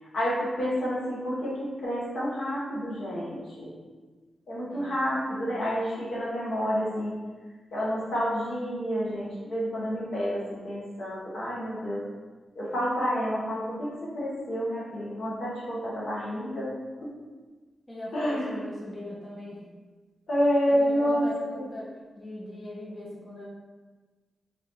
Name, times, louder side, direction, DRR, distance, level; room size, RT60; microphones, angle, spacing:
voice 1, 0.1-3.7 4.5-7.2 7.7-12.0 12.5-16.7 17.0-17.1 18.1-18.6 20.3-21.3 21.5-21.6, equal, 75° left, -7 dB, 1.2 m, -29 dB
voice 2, 17.9-19.6 20.7-23.5, left 1 dB, 20° left, -5 dB, 0.6 m, -40 dB
3.4 x 2.9 x 2.8 m, 1.3 s
wide cardioid pair, 110°, 0 cm